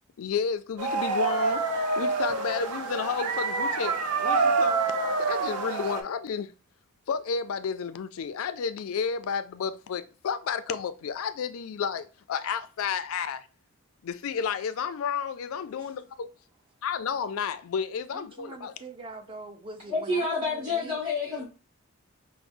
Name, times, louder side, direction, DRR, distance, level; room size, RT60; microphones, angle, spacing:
voice 1, 0.2-4.8 5.2-6.5 7.1-13.5 14.0-16.3 16.8-18.7, left 6 dB, 70° left, 0.4 m, -31 dB
sound 1, 0.8-6.0, right 4 dB, 85° right, 0.5 m, -27 dB
voice 2, 18.1-21.0, right 2 dB, 25° right, 0.3 m, -43 dB
voice 3, 19.9-21.4, left 3 dB, 70° right, 1.6 m, -28 dB
4.9 x 2.0 x 2.5 m
head